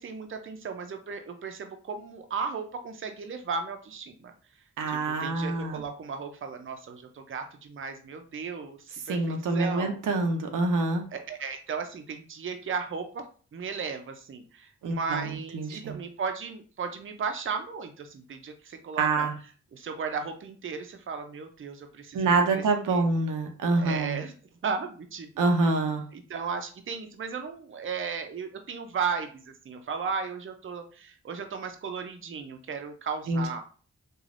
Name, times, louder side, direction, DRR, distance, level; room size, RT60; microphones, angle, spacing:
voice 1, 0.0-4.3 4.9-10.0 11.1-13.3 13.5-19.3 19.7-23.1 23.8-33.6, right 5 dB, 40° right, 6 dB, 0.5 m, -35 dB
voice 2, 4.8-5.8 9.1-11.0 14.8-15.3 15.5-16.0 19.0-19.3 22.1-24.2 25.4-26.0 33.3-33.4, right 3 dB, 85° right, 4 dB, 0.5 m, -26 dB
3.2 x 2.2 x 2.5 m, 0.40 s
cardioid pair, 50°, 31 cm